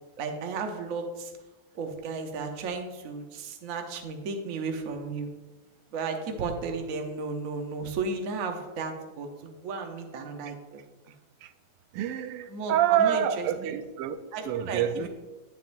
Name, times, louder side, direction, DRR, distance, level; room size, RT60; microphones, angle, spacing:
voice 1, 0.2-1.3 1.7-5.3 5.9-10.8 12.5-13.7 14.3-15.1, right 4 dB, 55° right, 4 dB, 0.9 m, -34 dB
voice 2, 11.9-14.2 14.4-15.1, right 10 dB, 90° right, 10 dB, 1.5 m, -27 dB
9.2 x 7.4 x 2.6 m, 1.2 s
omnidirectional pair, 2.4 m